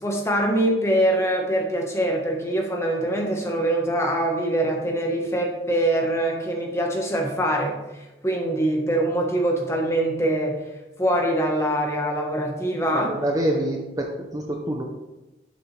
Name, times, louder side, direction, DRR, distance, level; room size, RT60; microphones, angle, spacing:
voice 1, 0.0-10.6 11.0-13.1, right 1 dB, 15° left, 0 dB, 1.3 m, -23 dB
voice 2, 12.9-14.8, right 1 dB, 20° right, 1 dB, 0.7 m, -26 dB
11.5 x 5.9 x 3.3 m, 1.0 s
head